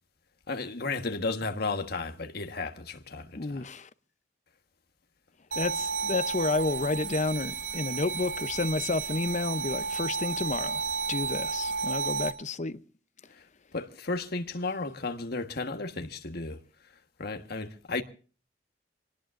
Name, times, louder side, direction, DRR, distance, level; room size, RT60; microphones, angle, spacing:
voice 1, 0.5-3.7 13.4-13.5 13.7-16.6 17.2-18.0, left 3 dB, 55° left, 1.4 m, -34 dB
voice 2, 3.3-3.9 5.6-10.8 11.1-12.8, left 3 dB, 40° left, 0.7 m, -30 dB
sound 1, 5.5-12.3, right 5 dB, 75° right, 1.7 m, -32 dB
26.0 x 19.0 x 2.6 m
head